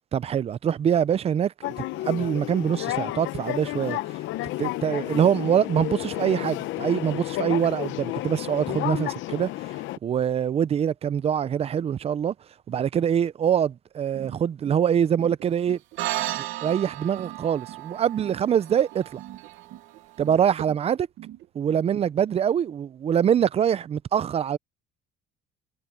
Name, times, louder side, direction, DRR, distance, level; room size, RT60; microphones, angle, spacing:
voice 1, 0.1-4.0 4.6-9.5 10.0-12.3 12.7-15.8 16.4-19.2 20.2-21.1 21.5-24.6, right 8 dB, 30° right, 0.5 m, -24 dB
sound 1, 1.6-10.0, left 16 dB, 75° left, 0.8 m, -31 dB
sound 2, 14.1-21.8, right 13 dB, 70° right, 1.2 m, -44 dB
sound 3, 16.0-20.6, right 15 dB, 90° right, 2.4 m, -35 dB
cardioid pair, 150°, 20 cm